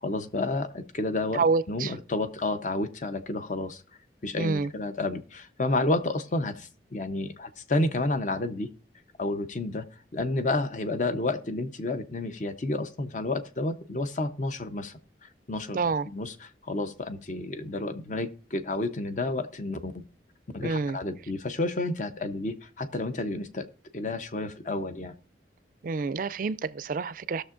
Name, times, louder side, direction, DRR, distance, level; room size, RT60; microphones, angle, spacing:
voice 1, 0.0-3.8 4.2-8.7 9.2-9.9 10.1-15.8 16.1-19.9 20.5-23.7 23.9-25.1, left 2 dB, 45° left, 0.7 m, -30 dB
voice 2, 1.3-2.0 4.3-4.7 15.7-16.1 20.6-21.0 25.8-27.4, right 4 dB, 50° right, 0.4 m, -28 dB
19.0 x 6.6 x 2.5 m
head